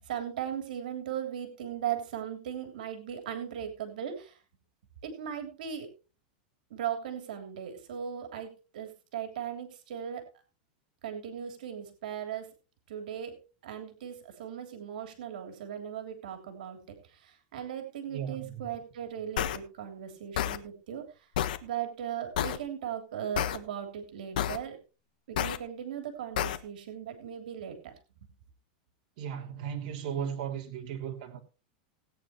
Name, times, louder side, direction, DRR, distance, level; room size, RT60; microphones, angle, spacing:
voice 1, 0.0-4.4 5.0-5.9 6.7-10.2 11.0-12.5 12.9-13.3 13.6-16.8 17.0-21.3 21.6-24.8 25.3-27.9, right 9 dB, 75° right, 3.1 m, -38 dB
voice 2, 18.1-18.7 29.2-31.4, right 8 dB, 50° right, 3.1 m, -36 dB
sound 1, 19.4-19.6 20.4-20.6 21.4-21.6 22.4-22.6 23.4-23.6 24.4-24.6 25.4-25.6 26.4-26.6, left 10 dB, 75° left, 1.3 m, -29 dB
19.0 x 9.3 x 3.1 m
supercardioid pair, 150°, 5 cm